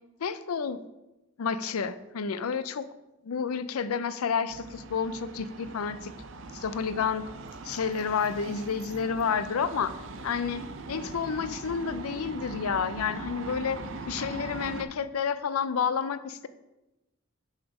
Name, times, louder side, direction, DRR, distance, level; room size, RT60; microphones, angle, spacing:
voice 1, 0.2-0.8 1.4-2.9 3.2-6.1 6.5-7.2 7.6-9.9 10.2-10.6 10.9-13.8 14.1-16.5, left 6 dB, 90° left, 14 dB, 0.5 m, -30 dB
sound 1, 4.5-14.8, right 3 dB, 60° right, 0.6 m, -41 dB
7.2 x 5.0 x 5.2 m, 1.0 s
head